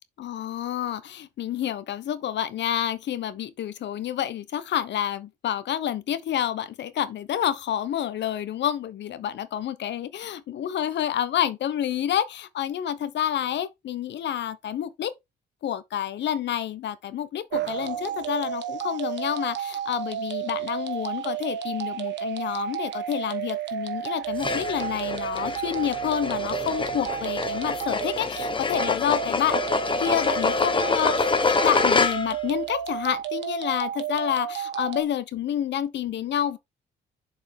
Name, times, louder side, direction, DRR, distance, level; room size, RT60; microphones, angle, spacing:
voice 1, 0.2-15.1 15.6-29.6 30.0-36.6, left 10 dB, 65° left, 1.0 m, -29 dB
sound 1, 17.5-35.0, right 10 dB, 70° right, 1.3 m, -32 dB
sound 2, 24.4-32.5, left 4 dB, 25° left, 1.1 m, -26 dB
7.1 x 4.7 x 3.7 m
cardioid pair, 90°, 19 cm